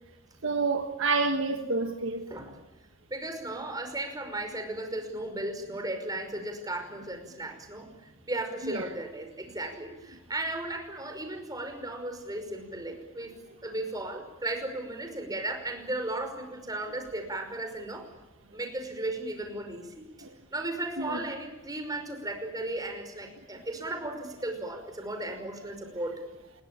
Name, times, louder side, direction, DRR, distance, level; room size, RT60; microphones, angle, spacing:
voice 1, 0.4-2.3 8.6-8.9 20.2-20.3 21.0-21.2, right 3 dB, 65° right, 1.6 m, -28 dB
voice 2, 3.1-13.3 13.6-18.1 18.5-20.0 20.5-26.2, right 2 dB, 20° right, 5.5 m, -35 dB
27.5 x 22.0 x 8.8 m
head